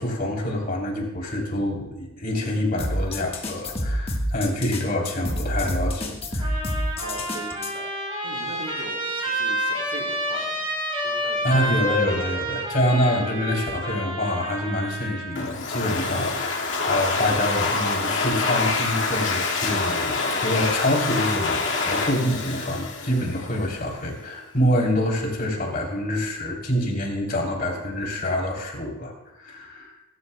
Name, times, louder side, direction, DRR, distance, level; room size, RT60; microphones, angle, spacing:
voice 1, 0.0-6.7 11.4-29.1 29.4-29.9, left 1 dB, 45° left, -1 dB, 3.4 m, -26 dB
Old school drums, 2.8-7.7, equal, 30° left, 1.4 m, -28 dB
Trumpet, 6.4-15.5, right 1 dB, 25° right, 3.5 m, -29 dB
voice 2, 7.0-10.7 11.0-11.5, right 1 dB, 75° right, -1 dB, 3.5 m, -40 dB
Domestic sounds home sounds, 15.4-23.8, left 3 dB, 70° left, 2.0 m, -26 dB
23.0 x 12.5 x 2.3 m, 0.95 s
head